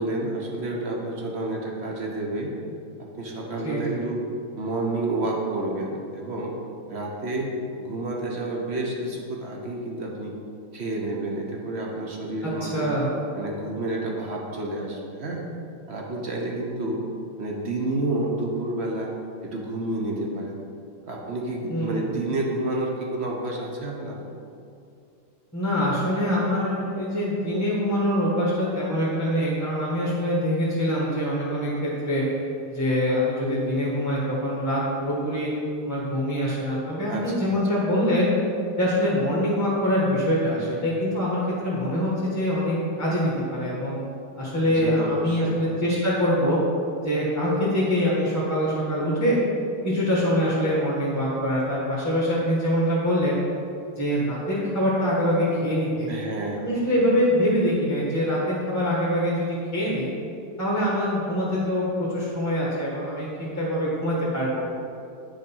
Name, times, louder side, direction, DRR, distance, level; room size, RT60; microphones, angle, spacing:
voice 1, 0.0-2.5 3.0-4.2 4.5-6.5 6.9-7.5 7.8-10.3 10.7-12.9 13.3-15.5 15.9-17.0 17.4-19.1 19.4-20.6 21.0-24.2 37.1-37.5 44.6-45.8 56.1-56.6 57.0-57.1, right 2 dB, 50° right, -1 dB, 0.8 m, -30 dB
voice 2, 3.6-4.0 12.4-13.1 21.7-22.1 25.5-32.2 32.6-35.5 35.8-38.3 38.8-44.0 44.4-46.6 47.0-49.4 49.8-53.4 54.0-56.1 56.6-60.1 60.6-63.3 63.6-64.6, equal, 10° left, -7 dB, 1.2 m, -24 dB
9.5 x 5.2 x 5.5 m, 2.5 s
omnidirectional pair, 2.3 m